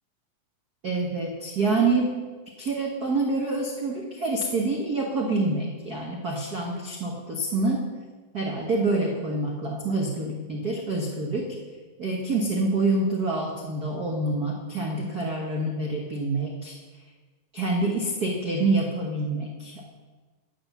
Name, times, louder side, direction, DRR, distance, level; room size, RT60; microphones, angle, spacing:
voice 1, 0.8-2.2 2.6-7.8 8.3-11.6 12.0-16.7 17.5-19.8, right 2 dB, 65° right, -1 dB, 0.9 m, -27 dB
11.0 x 8.0 x 7.3 m, 1.3 s
omnidirectional pair, 4.1 m